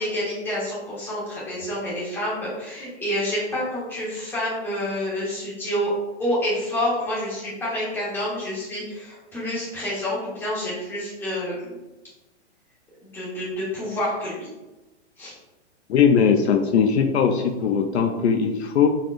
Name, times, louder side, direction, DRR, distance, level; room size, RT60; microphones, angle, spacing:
voice 1, 0.0-5.9 6.2-11.8 13.1-14.5 15.2-15.3, left 1 dB, 5° left, -8 dB, 1.1 m, -28 dB
voice 2, 15.9-18.9, left 6 dB, 65° left, 4 dB, 0.6 m, -19 dB
5.0 x 4.1 x 2.4 m, 1.1 s
hypercardioid pair, 160°, 35 cm